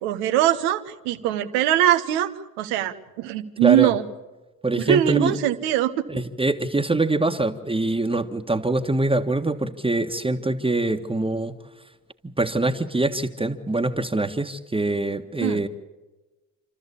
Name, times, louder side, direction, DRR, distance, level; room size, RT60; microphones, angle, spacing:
voice 1, 0.0-2.3 2.6-4.0 4.9-5.9 15.4-15.6, right 12 dB, 85° right, 8 dB, 1.3 m, -22 dB
voice 2, 3.6-3.9 4.6-5.4 6.1-11.5 12.2-15.7, right 2 dB, 15° right, 4 dB, 1.6 m, -24 dB
28.5 x 13.0 x 8.5 m, 1.2 s
supercardioid pair, 60°, 37 cm